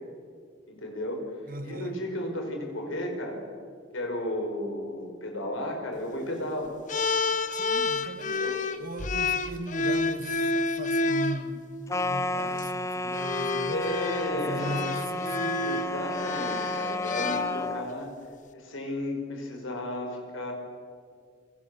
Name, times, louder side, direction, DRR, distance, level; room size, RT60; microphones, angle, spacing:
voice 1, 0.7-1.2 1.6-3.4 3.9-6.8 8.3-8.5 13.7-14.8 15.6-18.1 18.5-20.5, left 1 dB, 85° left, 3 dB, 5.4 m, -33 dB
voice 2, 1.5-2.0 7.5-8.4 8.8-13.9 14.3-15.7, right 1 dB, 45° right, 9 dB, 1.5 m, -38 dB
sound 1, 6.9-11.4 12.4-12.6 13.1-18.0, left 3 dB, 40° left, 1.1 m, -29 dB
sound 2, 11.9-17.9, left 2 dB, 15° left, 0.6 m, -32 dB
27.5 x 23.5 x 7.0 m, 2.2 s
head